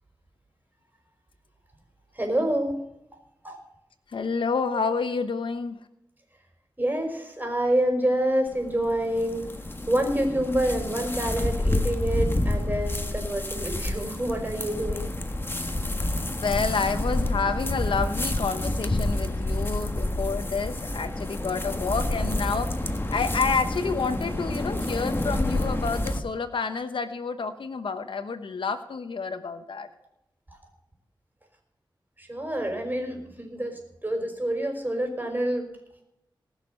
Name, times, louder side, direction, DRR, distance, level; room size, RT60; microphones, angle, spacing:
voice 1, 2.1-2.8 3.4-3.6 6.8-9.5 9.9-15.1 32.2-35.7, right 1 dB, 20° right, 3 dB, 5.1 m, -27 dB
voice 2, 4.1-5.8 16.3-22.7 23.1-29.9, left 5 dB, 80° left, 9 dB, 1.1 m, -29 dB
sound 1, 8.5-26.2, left 1 dB, 25° left, 1.6 m, -29 dB
19.5 x 6.7 x 6.6 m, 0.82 s
cardioid pair, 60°, 9 cm